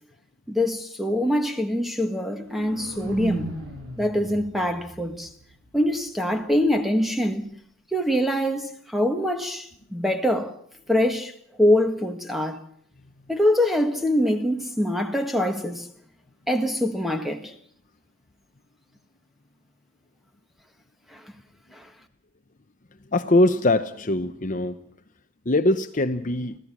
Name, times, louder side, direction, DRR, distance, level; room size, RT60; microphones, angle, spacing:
voice 1, 0.5-3.5 4.0-5.3 5.7-7.5 7.9-9.7 9.9-10.5 10.9-11.3 11.6-12.6 13.3-15.9 16.5-17.4, left 1 dB, ahead, 1.6 m, -24 dB
sound 1, 2.0-6.1, right 2 dB, 60° right, 6.7 m, -37 dB
voice 2, 23.1-24.8 25.5-26.6, left 1 dB, 35° left, 0.8 m, -22 dB
25.0 x 16.5 x 7.3 m
head